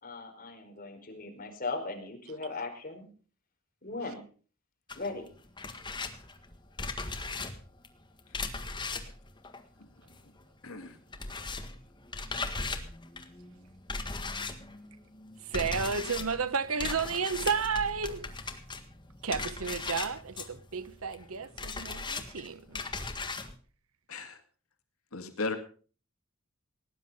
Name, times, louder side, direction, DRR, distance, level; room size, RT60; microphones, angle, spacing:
voice 1, 0.0-3.1 3.8-4.2 4.9-5.3, left 3 dB, 40° left, 4.8 m, -38 dB
sound 1, 4.9-10.4 10.7-23.5, left 3 dB, 20° left, 1.7 m, -38 dB
voice 2, 10.6-11.0 24.1-24.4 25.1-25.6, left 3 dB, 85° left, 2.3 m, -36 dB
voice 3, 15.4-18.3 19.2-22.9, right 5 dB, 85° right, 1.1 m, -32 dB
18.5 x 10.5 x 5.6 m
head